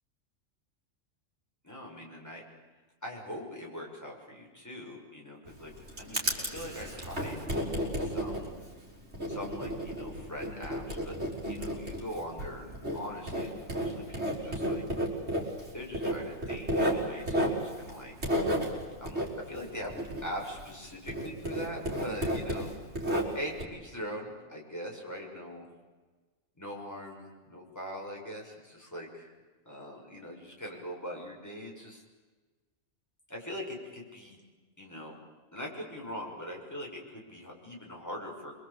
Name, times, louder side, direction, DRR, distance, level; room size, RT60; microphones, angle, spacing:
voice 1, 1.6-2.4 3.0-7.4 8.0-8.6 9.3-14.9 15.7-18.2 19.0-22.7 23.3-25.7 26.6-29.3 29.6-32.0 33.3-34.4 34.8-35.2 35.5-38.5, equal, 15° left, -2 dB, 6.6 m, -42 dB
Writing, 5.5-20.8 21.1-23.6, equal, 55° right, 5.0 m, -33 dB
27.5 x 23.5 x 8.5 m, 1.3 s
omnidirectional pair, 1.3 m